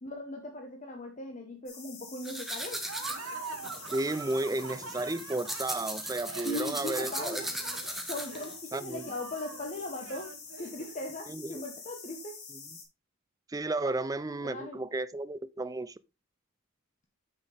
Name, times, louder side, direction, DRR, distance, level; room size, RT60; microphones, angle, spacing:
voice 1, 0.0-2.8 6.4-7.4 8.1-12.4 14.4-14.8, left 1 dB, 35° left, 1.0 m, -39 dB
sound 1, 1.7-12.8, left 5 dB, 90° left, 3.4 m, -47 dB
sound 2, 2.3-8.5, right 1 dB, ahead, 1.1 m, -38 dB
Laughter, 2.8-11.1, right 4 dB, 75° right, 1.2 m, -44 dB
voice 2, 3.9-7.4 8.7-9.1 11.3-11.6 13.5-16.0, right 2 dB, 15° right, 0.3 m, -33 dB
8.8 x 6.3 x 3.4 m
head